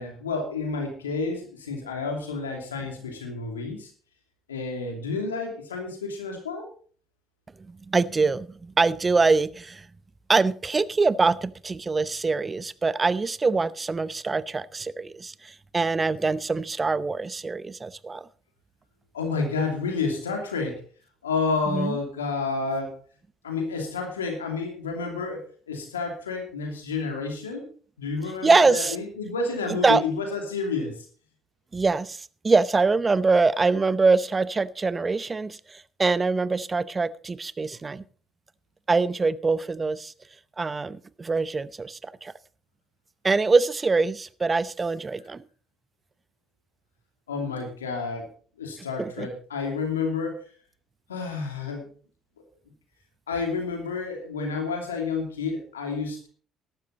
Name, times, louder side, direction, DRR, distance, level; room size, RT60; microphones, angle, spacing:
voice 1, 0.0-3.9 4.5-6.7 19.1-20.8 21.2-22.9 23.4-27.7 28.0-31.1 47.3-48.3 48.6-50.4 51.1-51.9 53.3-56.3, left 4 dB, 90° left, 2.7 m, -30 dB
voice 2, 7.7-9.9 10.3-18.3 21.7-22.0 28.4-29.0 29.8-30.0 31.7-38.0 38.9-40.1 40.6-42.3 43.2-45.4 49.0-49.3, right 4 dB, 30° right, 0.8 m, -24 dB
13.5 x 12.0 x 4.1 m
hypercardioid pair, 55°, 0 cm